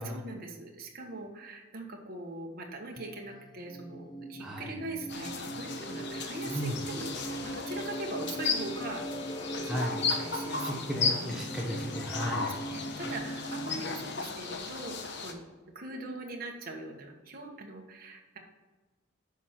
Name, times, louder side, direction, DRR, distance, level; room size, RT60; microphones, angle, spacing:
voice 1, 0.0-9.1 9.5-10.8 11.3-11.4 12.1-15.4 15.7-18.4, right 2 dB, 45° right, 0 dB, 1.3 m, -42 dB
sound 1, 3.0-14.3, right 1 dB, 20° left, 0.4 m, -40 dB
voice 2, 4.4-4.7 6.4-6.8 9.7-9.9 10.6-12.5, equal, 5° right, -3 dB, 1.1 m, -35 dB
sound 2, 5.1-15.3, left 4 dB, 55° left, 1.0 m, -35 dB
9.9 x 6.0 x 4.4 m, 1.2 s
head